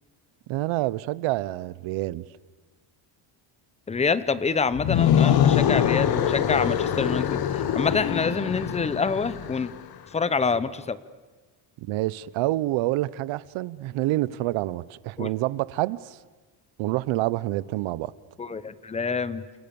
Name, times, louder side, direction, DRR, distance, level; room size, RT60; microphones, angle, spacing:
voice 1, 0.5-2.2 11.8-16.2 16.8-18.1, right 17 dB, 75° right, 1.0 m, -27 dB
voice 2, 3.9-9.7 10.1-11.0 15.2-15.3 18.4-19.4, left 5 dB, 15° left, 0.9 m, -26 dB
sound 1, 4.7-9.8, left 10 dB, 50° left, 1.4 m, -23 dB
29.5 x 28.0 x 7.1 m
cardioid pair, 165°, 47 cm